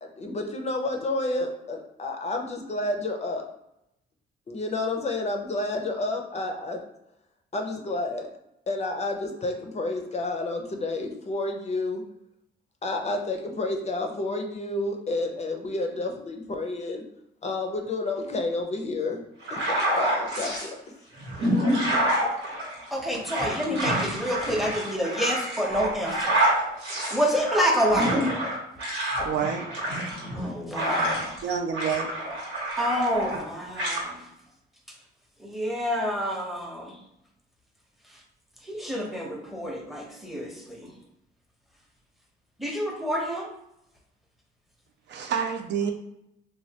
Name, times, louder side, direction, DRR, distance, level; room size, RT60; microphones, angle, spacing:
voice 1, 0.0-3.4 4.5-6.8 7.5-8.3 8.7-12.0 12.8-17.0 17.4-19.2 19.5-20.8, left 2 dB, 35° left, 4 dB, 0.5 m, -30 dB
sound 1, 19.4-20.7 21.2-31.4 31.7-33.5 33.8-34.0, right 1 dB, 80° right, 1.1 m, -27 dB
voice 2, 22.9-26.3 27.1-28.2 30.3-31.3 32.8-34.3 35.4-37.0 38.6-40.9 42.6-43.5, equal, ahead, 0 dB, 0.7 m, -28 dB
voice 3, 29.2-29.7 31.4-32.1 45.1-45.9, right 7 dB, 60° right, 4 dB, 0.4 m, -28 dB
3.1 x 2.2 x 2.7 m, 0.82 s
cardioid pair, 90°, 20 cm